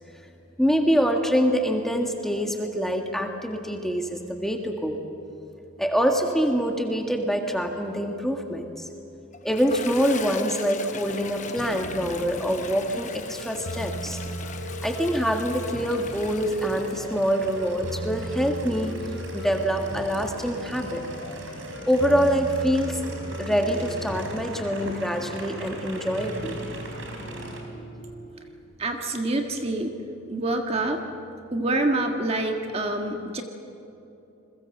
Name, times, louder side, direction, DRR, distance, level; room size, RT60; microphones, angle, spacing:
voice 1, 0.6-5.0 5.8-8.9 9.4-14.2 14.8-18.9 19.3-21.0 21.9-23.0 23.4-26.6, equal, ahead, 3 dB, 1.7 m, -25 dB
Toilet flush, 9.3-19.9, left 5 dB, 35° left, 1.0 m, -40 dB
Aircraft, 10.9-27.6, right 1 dB, 70° right, 4.5 m, -42 dB
sound 1, 11.6-28.3, equal, 75° left, 4.0 m, -37 dB
voice 2, 28.8-30.0 30.3-31.0 31.5-33.4, right 2 dB, 30° right, 4 dB, 1.7 m, -26 dB
28.0 x 22.0 x 7.9 m, 2.9 s
head